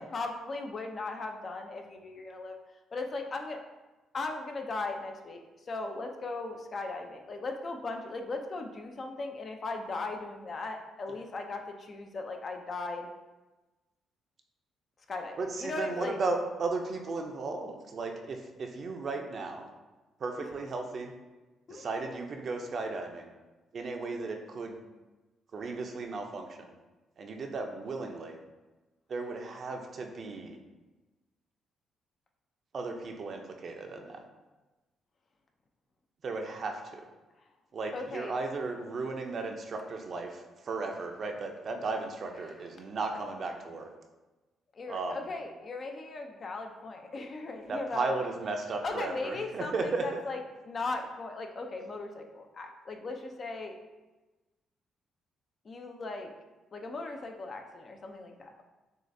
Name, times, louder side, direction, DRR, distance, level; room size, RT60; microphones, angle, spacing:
voice 1, 0.1-2.6 2.9-3.6 4.1-13.1 15.1-16.2 21.7-21.9 37.9-38.4 44.7-48.1 48.8-50.4 50.6-53.8 55.6-56.3 56.7-58.6, left 3 dB, 45° left, 4 dB, 0.5 m, -38 dB
voice 2, 15.4-19.7 20.2-21.1 21.7-23.3 23.7-24.8 25.5-26.8 27.2-28.4 29.1-30.6 32.7-34.3 36.2-37.0 37.7-43.9 44.8-45.3 47.7-50.2, right 3 dB, 50° right, 3 dB, 0.5 m, -35 dB
6.4 x 2.4 x 2.6 m, 1.2 s
cardioid pair, 90°, 0 cm